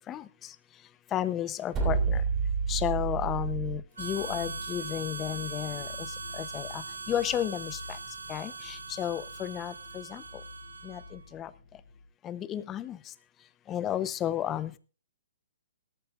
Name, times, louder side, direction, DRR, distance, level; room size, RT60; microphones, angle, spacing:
voice 1, 1.1-2.2 2.7-5.9 6.3-6.8 7.1-7.8 8.3-10.2 10.8-11.0 11.3-11.5 12.2-13.0 13.7-14.8, left 11 dB, 20° left, 15 dB, 0.8 m, -32 dB
sound 1, 1.7-3.8, right 5 dB, 20° right, 3.3 m, -28 dB
sound 2, 4.0-12.1, left 3 dB, 35° left, 2.6 m, -47 dB
Harmonica, 4.0-11.2, right 5 dB, 90° right, 0.6 m, -41 dB
18.5 x 14.0 x 2.5 m, 0.35 s
hypercardioid pair, 140°, 0 cm